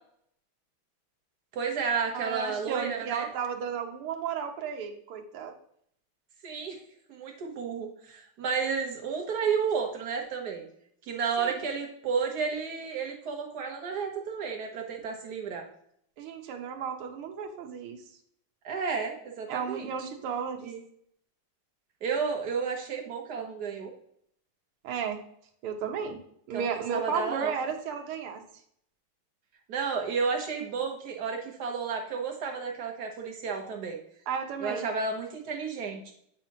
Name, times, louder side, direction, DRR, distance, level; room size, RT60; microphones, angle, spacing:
voice 1, 1.5-3.3 6.4-6.8 7.1-10.7 11.1-15.7 18.6-19.9 20.6-20.8 22.0-23.9 26.5-27.5 29.7-34.0 34.6-36.1, right 5 dB, 55° right, 2 dB, 1.4 m, -32 dB
voice 2, 2.1-5.5 11.4-11.6 16.2-18.0 19.5-20.7 24.8-25.2 25.6-26.2 26.5-28.4 34.3-34.9, right 7 dB, 85° right, 5 dB, 1.7 m, -33 dB
8.2 x 4.2 x 2.9 m, 0.67 s
omnidirectional pair, 2.4 m